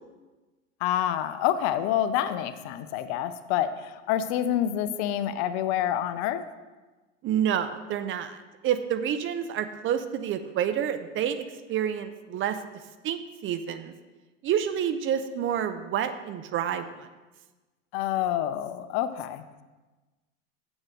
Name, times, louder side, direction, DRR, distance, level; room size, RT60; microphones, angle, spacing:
voice 1, 0.8-6.5 17.9-19.4, left 11 dB, 55° left, 11 dB, 0.7 m, -27 dB
voice 2, 7.2-8.4 8.6-12.6 13.0-13.9 14.4-17.1, right 9 dB, 30° right, 10 dB, 0.6 m, -28 dB
7.3 x 6.3 x 6.2 m, 1.2 s
hypercardioid pair, 90°, 39 cm